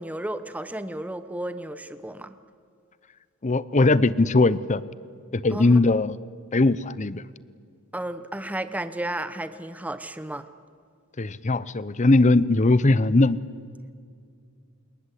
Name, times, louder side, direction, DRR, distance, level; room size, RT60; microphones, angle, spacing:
voice 1, 0.0-2.4 5.5-5.7 7.9-10.5, right 1 dB, 5° right, 11 dB, 0.8 m, -33 dB
voice 2, 3.4-4.8 5.3-6.2 6.5-7.2 11.2-13.4, left 2 dB, 35° left, 17 dB, 0.7 m, -20 dB
27.0 x 21.5 x 8.3 m, 2.2 s
head